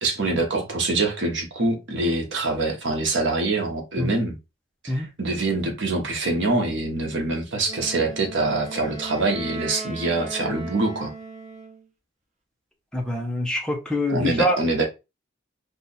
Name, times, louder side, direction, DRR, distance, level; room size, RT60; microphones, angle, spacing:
voice 1, 0.0-4.4 4.8-11.1 14.1-14.9, right 2 dB, 65° right, 1.0 m, -25 dB
Wind instrument woodwind instrument, 7.6-11.9, right 3 dB, 35° right, 0.6 m, -37 dB
voice 2, 12.9-14.6, left 1 dB, 5° left, 0.7 m, -25 dB
2.8 x 2.4 x 3.9 m
head